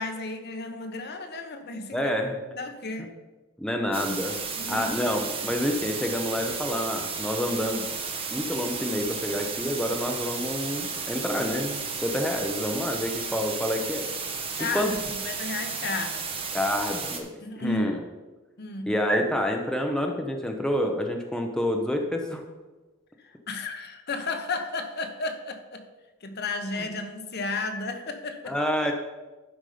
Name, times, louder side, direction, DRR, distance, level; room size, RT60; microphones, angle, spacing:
voice 1, 0.0-2.1 2.6-3.1 4.6-4.9 14.6-14.9 15.2-16.3 17.4-17.9 18.6-19.0 23.2-25.8 26.2-28.6, left 3 dB, 50° left, 6 dB, 1.0 m, -33 dB
voice 2, 1.9-2.4 3.0-3.1 3.6-4.4 4.7-7.8 8.3-14.1 14.7-14.9 16.5-17.3 17.6-18.0 18.9-22.4 28.5-28.9, left 1 dB, 5° left, 2 dB, 0.7 m, -28 dB
sound 1, 3.9-17.2, right 5 dB, 25° right, 1.0 m, -33 dB
11.5 x 5.3 x 5.0 m, 1.2 s
head